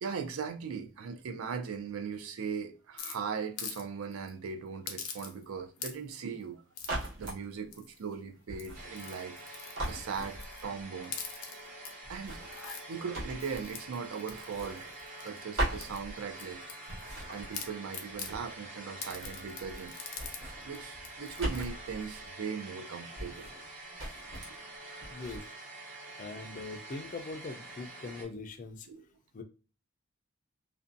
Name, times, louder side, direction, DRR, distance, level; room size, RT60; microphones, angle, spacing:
voice 1, 0.0-6.6 7.0-9.4 9.9-11.2 12.1-12.5 12.9-14.9 15.2-16.6 17.3-19.9 20.6-23.5 24.3-24.6 26.1-26.3 28.9-29.1, right 6 dB, 80° right, 0.4 m, -39 dB
sound 1, 3.0-3.8 4.1-4.3 4.9-5.5 5.8-6.2 6.8-7.1 7.7-8.1 8.5-10.6 11.0-11.9 12.4-12.8 13.4-15.4 15.8-17.2 17.5-18.3 19.0-20.4 20.7-20.8 21.0-21.7, left 6 dB, 90° left, 0.6 m, -44 dB
sound 2, 6.8-7.4 8.5-9.5 9.8-10.8 12.0-13.9 14.3-15.3 15.6-16.5 16.9-18.7 19.0-19.9 20.1-22.3 23.2-23.7 24.0-24.6 25.0-25.4, right 1 dB, 65° right, 1.0 m, -40 dB
sound 3, 8.7-28.2, right 2 dB, 35° right, 1.1 m, -47 dB
voice 2, 25.1-25.4 26.2-28.9 29.3-29.4, left 3 dB, 40° left, 0.3 m, -41 dB
2.5 x 2.2 x 2.5 m
head